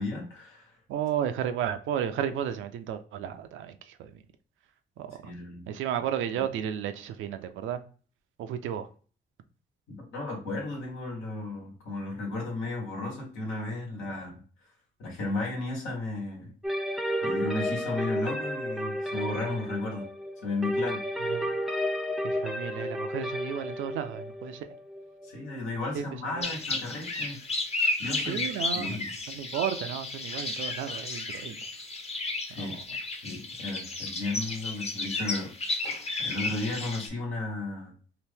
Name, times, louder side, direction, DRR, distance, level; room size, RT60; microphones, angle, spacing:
voice 1, 0.0-0.8 5.2-5.6 9.9-14.4 15.0-16.5 17.2-20.0 20.4-21.3 25.2-27.4 28.0-28.5 28.7-29.1 32.4-32.8 33.2-35.5 36.2-37.9, left 2 dB, 90° left, 1.3 m, -34 dB
voice 2, 0.9-4.1 5.0-5.3 5.7-7.8 8.4-8.9 21.3-21.5 22.2-24.7 25.9-26.0 26.4-26.5 28.3-29.0 29.3-31.6 32.6-32.8, right 9 dB, 80° right, 0.5 m, -33 dB
sound 1, 16.6-26.3, equal, ahead, 0.4 m, -32 dB
sound 2, 26.4-37.1, left 3 dB, 30° left, 0.7 m, -33 dB
2.9 x 2.6 x 3.3 m
cardioid pair, 90°, 20 cm